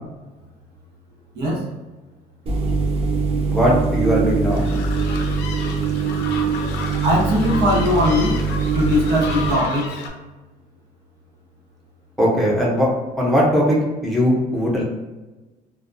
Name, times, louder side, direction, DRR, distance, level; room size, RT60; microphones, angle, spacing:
sound 1, 2.5-9.5, right 4 dB, 35° right, 0.4 m, -22 dB
voice 1, 3.5-4.7 12.2-12.9 13.2-14.8, equal, ahead, -5 dB, 0.7 m, -19 dB
sound 2, 4.5-10.1, left 4 dB, 85° left, 0.4 m, -33 dB
voice 2, 7.0-8.4 8.7-10.0, left 1 dB, 85° right, -4 dB, 0.9 m, -20 dB
2.2 x 2.2 x 2.5 m, 1.2 s
cardioid pair, 110°, 17 cm